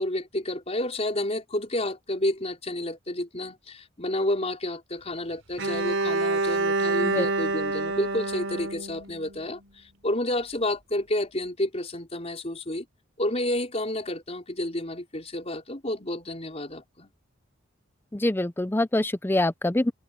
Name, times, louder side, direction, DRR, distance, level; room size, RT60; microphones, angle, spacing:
voice 1, 0.0-12.9 13.2-17.1, left 1 dB, 30° left, 5.0 m, -30 dB
Bowed string instrument, 5.6-9.6, right 2 dB, 80° right, 4.8 m, -27 dB
voice 2, 18.1-19.9, left 1 dB, 10° left, 0.5 m, -25 dB
head